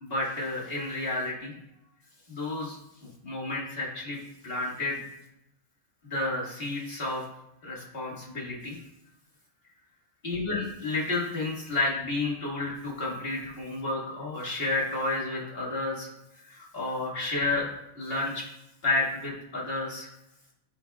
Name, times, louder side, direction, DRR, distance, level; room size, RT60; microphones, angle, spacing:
voice 1, 0.0-1.5 2.3-2.8 3.2-4.2 4.4-5.0 6.0-7.2 7.6-8.8 10.2-16.1 16.5-17.7 18.0-18.4 18.8-20.1, left 2 dB, 40° left, -4 dB, 2.2 m, -31 dB
12.5 x 4.8 x 2.4 m, 0.82 s
omnidirectional pair, 1.5 m